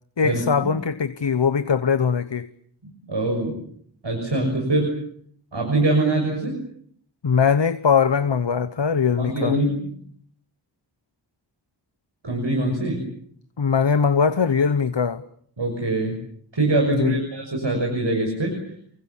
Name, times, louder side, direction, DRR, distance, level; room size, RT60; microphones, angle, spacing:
voice 1, 0.2-2.5 7.2-9.6 13.6-15.2 16.9-17.2, left 6 dB, 80° left, 1.0 m, -21 dB
voice 2, 3.1-3.6 4.0-5.0 5.5-6.6 9.2-9.9 12.2-13.0 15.6-16.2 16.5-18.5, right 2 dB, 85° right, 6.6 m, -23 dB
29.5 x 24.0 x 7.3 m
wide cardioid pair, 50°, 43 cm